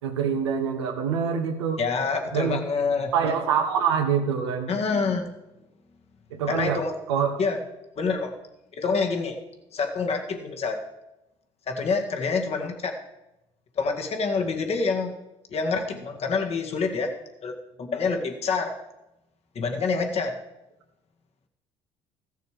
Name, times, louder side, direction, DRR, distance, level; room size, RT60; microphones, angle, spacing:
voice 1, 0.0-1.8 2.3-2.6 3.1-4.7 6.3-6.8 7.1-7.4, right 7 dB, 90° right, 3 dB, 1.4 m, -25 dB
voice 2, 1.8-3.1 4.7-5.4 6.5-6.9 7.4-7.6 8.0-8.3 8.7-9.4 9.7-10.8 11.7-13.0 13.8-15.1 15.5-17.1 17.4-18.7 19.6-20.3, left 4 dB, 50° left, 4 dB, 2.0 m, -27 dB
14.5 x 6.7 x 5.0 m, 0.94 s
hypercardioid pair, 65°, 14 cm